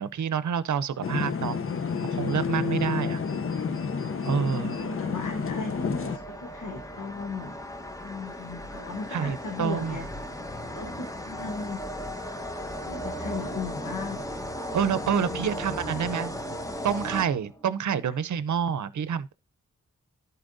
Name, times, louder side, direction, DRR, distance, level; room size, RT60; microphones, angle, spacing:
voice 1, 0.0-1.6 2.0-3.2 4.3-4.8 9.1-9.9 14.7-16.3 16.8-19.3, right 7 dB, 70° right, 0.7 m, -28 dB
sound 1, 0.9-17.8, equal, 10° left, 1.1 m, -38 dB
sound 2, 1.0-6.2, left 6 dB, 45° left, 0.7 m, -30 dB
voice 2, 3.0-3.5 4.6-7.6 8.0-10.1 10.7-11.8 12.7-14.2 15.0-16.0 16.7-16.9 18.0-18.1, left 4 dB, 80° left, 1.1 m, -37 dB
11.5 x 4.4 x 2.6 m
cardioid pair, 45°, 31 cm